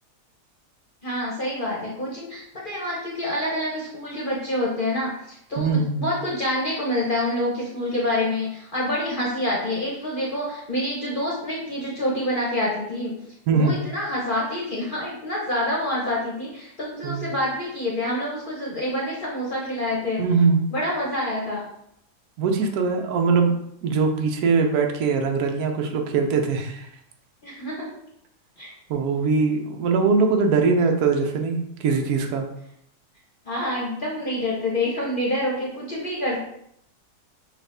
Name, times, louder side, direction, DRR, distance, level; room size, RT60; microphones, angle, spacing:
voice 1, 1.0-13.2 13.5-20.2 20.7-21.6 27.4-28.0 28.6-28.7 33.4-36.4, left 1 dB, 40° left, -4 dB, 0.9 m, -27 dB
voice 2, 5.6-6.1 13.5-13.8 17.0-17.2 20.2-20.7 22.4-23.5 23.8-26.9 28.9-32.5, right 4 dB, 75° right, 3 dB, 1.1 m, -21 dB
6.2 x 2.4 x 3.4 m, 0.73 s
omnidirectional pair, 1.7 m